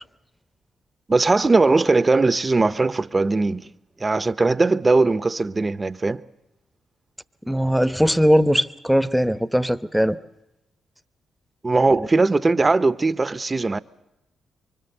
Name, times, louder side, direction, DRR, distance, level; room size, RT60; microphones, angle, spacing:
voice 1, 1.1-3.7 4.0-6.2 11.6-13.8, right 3 dB, 30° right, 0.9 m, -19 dB
voice 2, 7.5-10.2, equal, ahead, 1.0 m, -19 dB
25.0 x 24.0 x 6.7 m
supercardioid pair, 55°, 0 cm